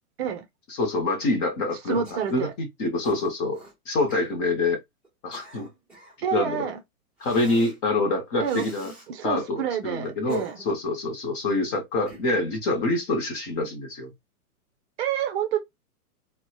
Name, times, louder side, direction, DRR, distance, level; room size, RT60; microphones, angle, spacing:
voice 1, 0.7-3.6 3.9-4.8 5.2-5.7 6.3-6.7 7.2-8.9 9.2-14.1, left 2 dB, 25° left, 0.6 m, -26 dB
voice 2, 1.9-2.5 6.2-6.8 8.4-8.6 9.1-10.5 15.0-15.6, right 8 dB, 40° right, 0.6 m, -28 dB
Cough, 2.0-2.5 3.0-3.7 4.1-4.3 5.0-6.2 7.2-7.8 8.4-9.1 10.0-10.9 12.1-12.5, right 2 dB, 5° right, 0.8 m, -46 dB
2.6 x 2.1 x 2.2 m
hypercardioid pair, 135°, 45 cm